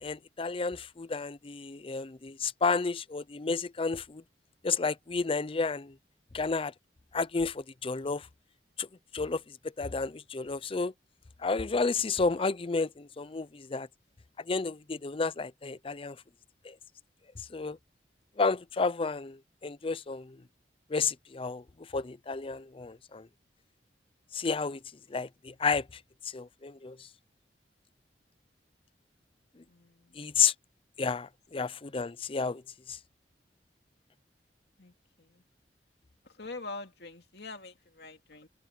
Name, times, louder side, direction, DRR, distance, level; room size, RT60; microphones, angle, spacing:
voice 1, 0.0-4.2 4.6-5.9 6.3-6.7 7.1-8.3 8.8-8.9 9.1-9.4 9.8-10.9 11.4-13.9 14.5-16.2 16.6-16.7 17.5-17.8 18.4-20.4 20.9-21.6 21.9-23.3 24.3-24.8 25.1-25.9 26.3-27.0 30.2-30.5 31.0-32.6 32.9-33.0, left 4 dB, 30° left, 0.5 m, -31 dB
voice 2, 29.7-30.2 34.8-35.4 36.3-38.5, left 3 dB, 65° left, 2.6 m, -45 dB
head